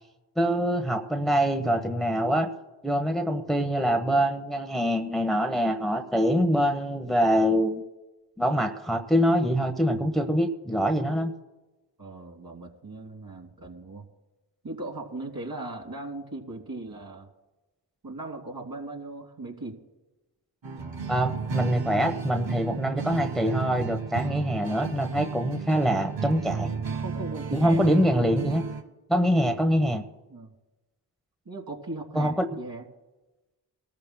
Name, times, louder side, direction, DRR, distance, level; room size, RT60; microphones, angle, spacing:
voice 1, 0.4-2.5 2.8-7.8 8.4-11.3 21.1-26.7 27.5-28.6 29.1-30.0 32.1-32.5, equal, ahead, 5 dB, 1.0 m, -24 dB
voice 2, 12.0-14.0 14.6-17.3 18.0-19.8 24.2-24.5 26.9-27.8 30.3-30.5 31.4-32.8, right 2 dB, 45° right, 1 dB, 3.1 m, -38 dB
sound 1, 20.6-28.8, right 5 dB, 65° right, 1.6 m, -34 dB
24.5 x 13.5 x 2.2 m, 1.1 s
supercardioid pair, 45°, 48 cm